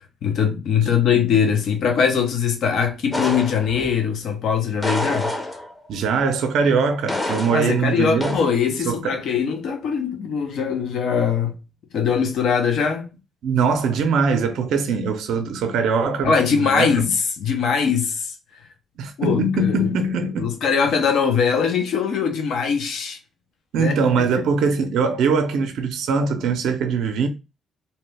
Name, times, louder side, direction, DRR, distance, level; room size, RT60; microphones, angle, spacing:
voice 1, 0.2-5.3 7.5-11.6 11.9-13.1 16.2-18.6 19.2-19.9 20.4-23.2 23.8-24.0 24.4-24.5, left 6 dB, 70° left, 0.6 m, -21 dB
voice 2, 0.8-1.2 5.9-8.4 8.8-9.2 13.4-17.1 19.0-20.5 23.7-27.3, right 4 dB, 80° right, 0.5 m, -22 dB
sound 1, 3.1-4.0 4.8-5.9 7.1-7.8 8.2-8.6, left 1 dB, 20° left, 0.6 m, -27 dB
2.8 x 2.2 x 3.2 m
cardioid pair, 90°, 0 cm